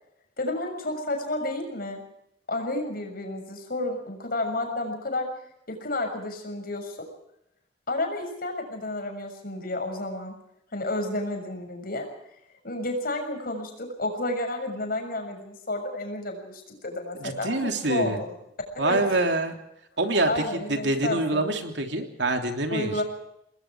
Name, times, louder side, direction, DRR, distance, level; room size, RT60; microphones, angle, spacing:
voice 1, 0.4-2.0 2.5-5.3 5.7-7.1 7.9-10.3 10.7-12.1 12.6-18.3 18.7-19.0 20.3-21.6 22.7-23.0, left 2 dB, 55° left, 5 dB, 6.6 m, -31 dB
voice 2, 17.2-18.2 18.8-19.5 20.0-23.0, right 2 dB, 70° right, 5 dB, 3.2 m, -26 dB
27.5 x 20.5 x 4.8 m, 0.78 s
head